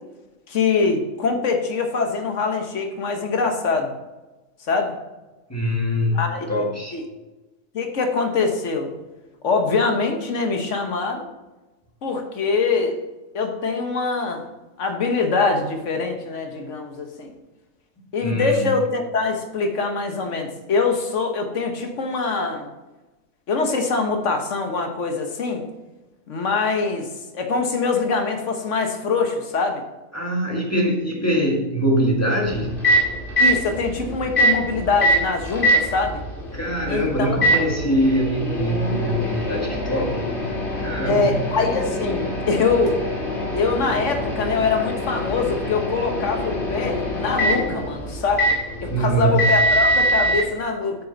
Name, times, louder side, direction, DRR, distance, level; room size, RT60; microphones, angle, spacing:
voice 1, 0.5-3.9 4.7-4.9 6.1-6.5 6.9-7.0 7.7-8.9 9.4-11.3 12.0-13.0 13.3-14.4 14.8-17.3 18.1-22.7 23.5-25.6 26.3-27.1 27.3-29.8 33.4-36.2 36.9-37.5 41.1-43.0 43.5-48.4 48.8-51.0, left 4 dB, 55° left, 4 dB, 1.5 m, -23 dB
voice 2, 5.5-7.0 18.2-18.8 30.1-32.8 36.5-40.3 40.8-41.3 48.9-49.5, equal, 10° left, -1 dB, 1.7 m, -23 dB
Microwave oven, 32.4-50.4, equal, 35° left, 2.6 m, -24 dB
8.8 x 6.8 x 3.9 m, 1.1 s
omnidirectional pair, 1.5 m